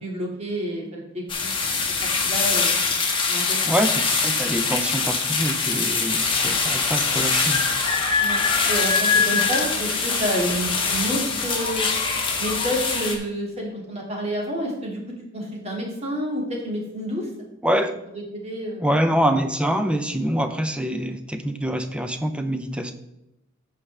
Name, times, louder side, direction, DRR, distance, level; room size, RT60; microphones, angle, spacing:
voice 1, 0.0-1.5 2.2-2.7 3.3-3.8 8.2-11.9 12.4-15.0 15.3-17.3 18.1-18.8, equal, 35° right, -1 dB, 2.3 m, -29 dB
sound 1, 1.3-13.2, left 4 dB, 25° left, 1.3 m, -23 dB
voice 2, 3.7-7.7 17.6-17.9 18.8-22.9, equal, 5° right, 7 dB, 0.6 m, -25 dB
14.0 x 5.0 x 3.4 m, 0.88 s
head